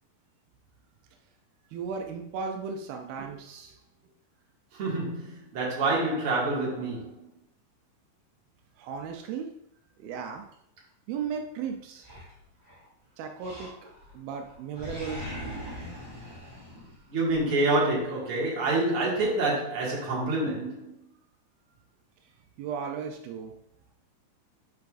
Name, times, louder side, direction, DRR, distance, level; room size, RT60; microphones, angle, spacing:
voice 1, 1.7-3.8 8.8-9.5 10.0-10.4 11.1-12.1 13.2-13.7 14.1-15.2 22.6-23.5, right 6 dB, 85° right, 2.5 m, -35 dB
voice 2, 4.7-7.2 17.1-20.9, right 2 dB, 45° right, 2.5 m, -27 dB
Animal, 12.0-12.9 13.4-14.2 14.4-17.4, equal, 10° right, 2.2 m, -41 dB
9.3 x 5.7 x 2.6 m
omnidirectional pair, 4.2 m